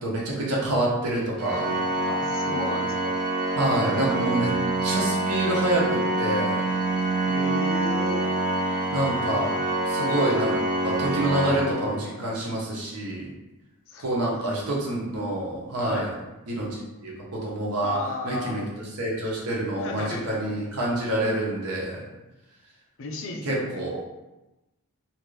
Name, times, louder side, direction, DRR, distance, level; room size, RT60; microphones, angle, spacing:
voice 1, 0.0-1.8 3.6-4.5 4.8-6.6 8.9-9.5 9.9-10.6 10.8-13.3 14.0-16.1 16.5-18.0 18.2-18.6 19.0-22.0 23.4-24.0, right 1 dB, 80° right, -4 dB, 0.8 m, -27 dB
Organ, 1.4-12.4, right 2 dB, 40° right, 0.4 m, -26 dB
voice 2, 2.1-3.2 7.2-8.4 9.9-10.1 13.9-14.1 14.4-14.8 15.8-16.1 17.8-18.6 19.8-20.6 23.0-23.9, left 2 dB, 60° left, 2 dB, 0.5 m, -34 dB
2.9 x 2.5 x 3.1 m, 1.0 s
head